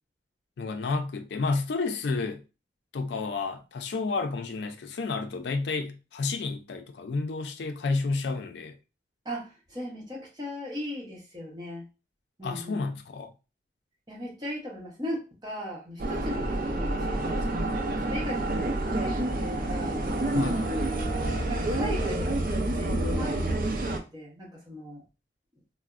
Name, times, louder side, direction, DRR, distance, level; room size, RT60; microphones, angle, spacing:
voice 1, 0.6-2.4 2.9-8.8 12.4-13.3 20.3-20.7, left 3 dB, 75° left, 0.4 m, -30 dB
voice 2, 9.2-11.9 12.4-12.9 14.1-20.7 21.4-25.0, equal, 25° right, 0.9 m, -38 dB
sound 1, 16.0-24.0, right 1 dB, 50° right, 0.4 m, -28 dB
4.1 x 2.0 x 2.4 m
head